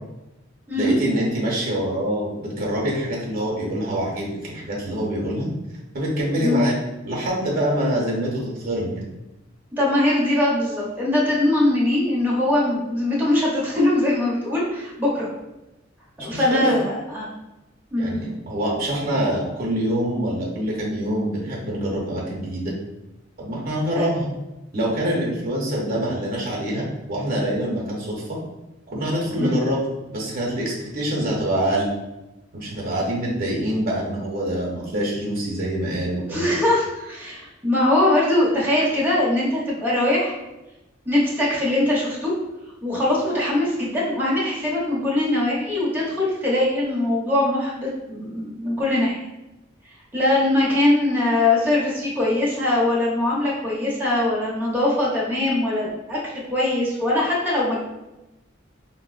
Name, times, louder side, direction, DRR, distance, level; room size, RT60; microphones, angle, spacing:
voice 1, 0.8-5.5 5.9-6.8 7.0-9.0 16.2-16.8 18.0-22.7 23.4-24.3 24.7-28.4 28.9-29.8 30.1-31.9 32.5-36.5, right 1 dB, 50° right, -3 dB, 0.8 m, -25 dB
voice 2, 9.7-15.3 16.2-17.3 17.9-18.2 23.9-24.0 29.4-29.6 36.3-40.3 41.1-42.3 42.8-49.2 50.1-57.8, left 1 dB, 10° right, -7 dB, 0.7 m, -21 dB
4.3 x 2.0 x 2.4 m, 0.98 s
head